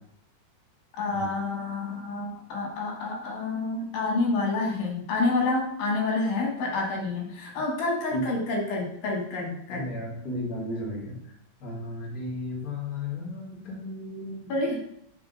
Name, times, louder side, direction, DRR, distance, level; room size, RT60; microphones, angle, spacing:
voice 1, 0.9-9.9 14.5-14.8, left 3 dB, 90° left, 0 dB, 3.1 m, -28 dB
voice 2, 9.7-11.3 11.6-14.5, left 1 dB, 35° left, -5 dB, 1.7 m, -34 dB
6.0 x 3.5 x 5.2 m, 0.72 s
omnidirectional pair, 3.9 m